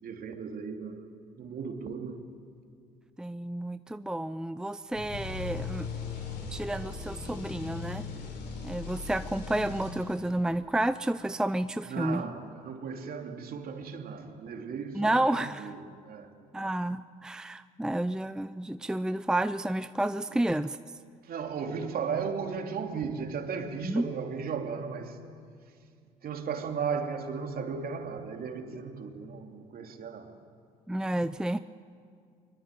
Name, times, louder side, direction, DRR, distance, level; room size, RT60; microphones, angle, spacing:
voice 1, 0.0-1.1 1.4-2.3 11.8-16.3 21.2-25.2 26.2-30.3, right 6 dB, 55° right, 3.1 m, -36 dB
voice 2, 3.2-5.9 6.5-8.1 8.6-12.2 14.9-15.7 16.5-20.8 23.8-24.0 30.9-31.6, right 1 dB, 5° right, 0.6 m, -30 dB
sound 1, 4.9-10.4, left 4 dB, 70° left, 5.5 m, -38 dB
23.5 x 23.5 x 9.2 m
hypercardioid pair, 60°, 19 cm